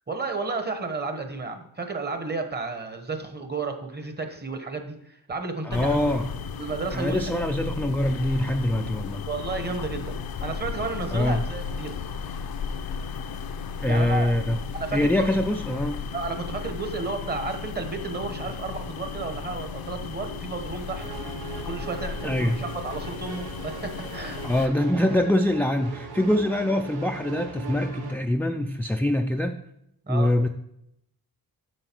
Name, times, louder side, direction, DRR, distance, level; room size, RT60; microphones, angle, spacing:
voice 1, 0.1-6.1 6.6-7.4 9.2-11.9 13.8-14.3 14.7-15.4 16.1-21.1 21.7-24.7 30.1-30.3, right 3 dB, 25° right, 6 dB, 1.1 m, -32 dB
voice 2, 5.6-6.3 6.9-9.2 11.1-11.4 13.8-14.6 14.9-16.0 22.2-22.6 24.4-29.6 30.1-30.5, left 1 dB, 5° left, 5 dB, 0.3 m, -24 dB
sound 1, 5.7-24.7, left 6 dB, 70° left, 0.6 m, -35 dB
sound 2, 20.9-28.1, right 5 dB, 85° right, 1.1 m, -39 dB
7.7 x 6.5 x 4.5 m, 0.76 s
wide cardioid pair, 120°, 38 cm